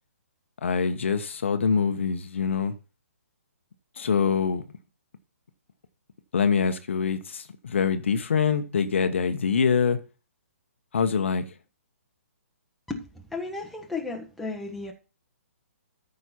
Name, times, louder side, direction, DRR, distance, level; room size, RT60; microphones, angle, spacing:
voice 1, 0.6-2.7 4.0-4.6 6.3-10.0 10.9-11.4, left 6 dB, 55° left, 1.1 m, -24 dB
voice 2, 12.9-14.9, left 3 dB, ahead, 1.3 m, -34 dB
13.5 x 5.5 x 4.3 m
figure-of-eight pair, 130°, 8 cm